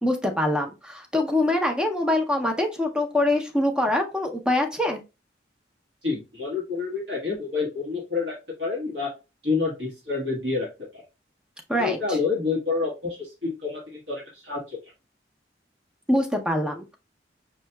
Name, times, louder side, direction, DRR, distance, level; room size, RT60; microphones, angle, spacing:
voice 1, 0.0-5.0 11.7-12.2 16.1-17.0, left 1 dB, 5° right, 4 dB, 0.5 m, -24 dB
voice 2, 6.0-8.3 8.6-9.1 9.4-10.7 10.9-11.0 11.8-14.8, left 4 dB, 75° right, -4 dB, 1.4 m, -28 dB
5.3 x 2.8 x 2.2 m, 0.27 s
head